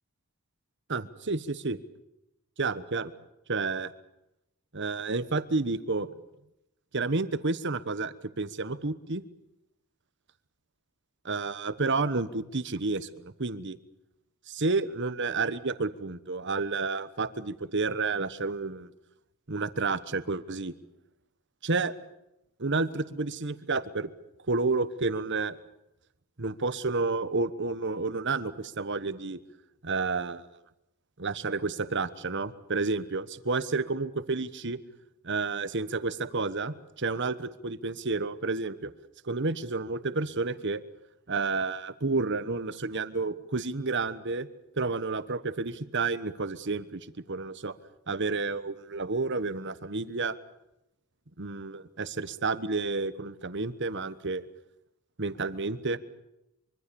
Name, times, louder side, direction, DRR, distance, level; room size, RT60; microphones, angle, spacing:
voice 1, 0.9-1.8 2.6-3.1 3.5-3.9 4.7-6.1 6.9-9.2 11.2-13.8 14.5-18.9 19.5-20.7 21.6-21.9 22.6-24.1 24.5-25.6 26.4-29.4 29.8-30.5 31.2-34.8 35.2-38.9 39.2-40.8 41.3-44.5 44.8-47.7 48.1-50.4 51.4-54.4 55.2-56.0, right 3 dB, 55° right, 14 dB, 1.2 m, -30 dB
25.0 x 24.5 x 7.0 m, 0.88 s
head